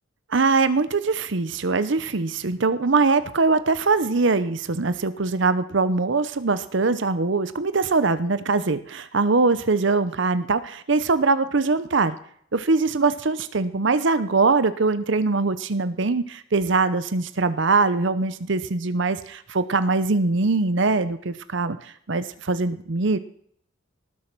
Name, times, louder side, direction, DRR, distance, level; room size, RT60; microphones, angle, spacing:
voice 1, 0.3-12.2 12.5-23.2, right 3 dB, 65° right, 13 dB, 0.8 m, -22 dB
19.0 x 7.5 x 6.1 m, 0.64 s
head